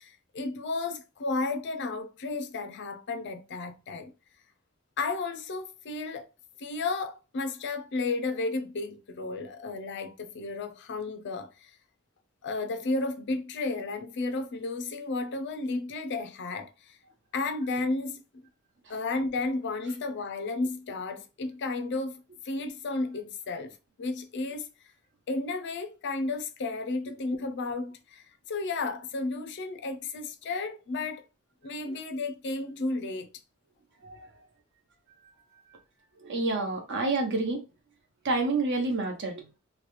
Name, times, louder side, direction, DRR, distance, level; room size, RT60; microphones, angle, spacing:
voice 1, 0.0-4.1 5.0-6.3 6.6-11.7 12.4-17.0 17.3-18.2 18.9-22.1 22.4-24.7 25.3-31.2 31.6-33.3, left 3 dB, 55° left, 0.4 m, -33 dB
voice 2, 36.2-37.6 38.2-39.4, right 3 dB, 55° right, 0.9 m, -28 dB
3.0 x 2.2 x 3.1 m
head